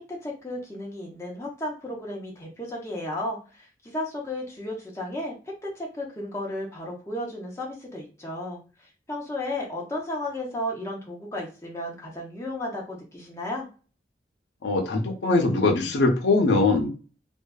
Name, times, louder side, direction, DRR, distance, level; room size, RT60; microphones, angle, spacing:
voice 1, 0.1-5.3 5.6-13.7, left 1 dB, 15° left, -3 dB, 0.6 m, -34 dB
voice 2, 14.6-16.9, left 3 dB, 85° left, 2 dB, 0.6 m, -21 dB
2.5 x 2.2 x 2.3 m, 0.36 s
head